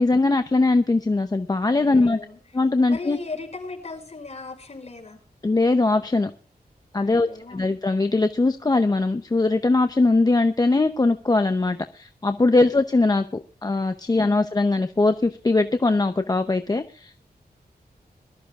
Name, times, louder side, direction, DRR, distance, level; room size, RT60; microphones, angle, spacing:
voice 1, 0.0-2.2 2.5-3.2 5.4-6.3 6.9-13.2 13.6-17.2, left 3 dB, 25° left, 8 dB, 0.7 m, -21 dB
voice 2, 1.7-2.4 2.9-5.2 7.0-7.7 12.6-12.8 14.1-14.4, left 3 dB, 45° left, 1 dB, 6.0 m, -37 dB
23.0 x 13.5 x 2.4 m, 0.38 s
wide cardioid pair, 150°, 16 cm